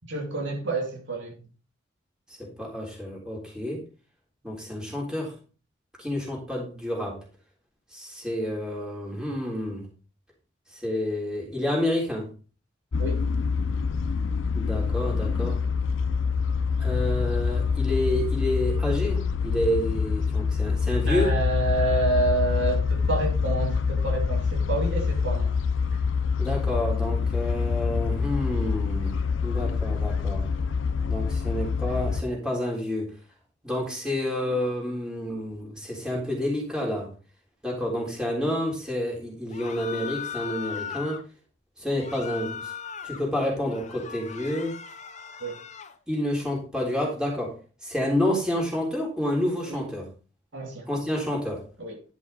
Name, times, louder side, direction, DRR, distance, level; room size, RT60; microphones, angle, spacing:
voice 1, 0.1-1.5 13.0-13.2 21.1-25.6 45.4-45.6 49.6-49.9 50.5-50.9 51.8-52.0, right 2 dB, 70° right, 2.6 m, -28 dB
voice 2, 2.4-3.8 4.4-5.3 6.0-7.2 7.9-9.9 10.7-12.3 14.5-15.6 16.8-21.3 26.4-29.2 29.4-30.5 31.1-33.1 33.6-37.1 37.6-41.2 41.8-42.7 43.0-44.8 46.1-47.6 47.8-50.1 50.9-51.6, left 1 dB, 5° right, 3.6 m, -29 dB
sound 1, 12.9-32.2, left 5 dB, 85° left, 0.7 m, -26 dB
sound 2, 39.5-41.2 41.9-43.2 43.6-46.0, left 7 dB, 40° left, 0.8 m, -38 dB
11.0 x 6.1 x 4.1 m
head